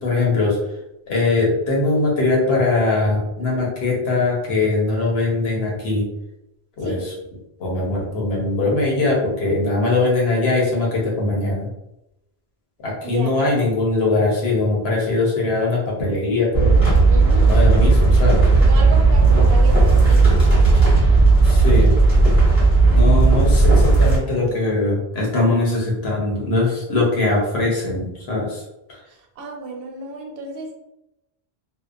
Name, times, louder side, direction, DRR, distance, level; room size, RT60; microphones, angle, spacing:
voice 1, 0.0-0.6 1.1-6.0 6.8-7.1 7.6-11.7 12.8-16.7 17.4-18.5 21.4-22.0 22.9-28.6, left 2 dB, 85° left, -3 dB, 1.1 m, -21 dB
voice 2, 13.0-13.4 17.1-17.5 18.7-20.6 22.9-23.4 29.1-30.7, right 3 dB, 70° right, 1 dB, 0.7 m, -32 dB
sound 1, 16.5-24.2, right 3 dB, 20° left, 1.3 m, -14 dB
2.8 x 2.2 x 2.4 m, 0.89 s
omnidirectional pair, 1.0 m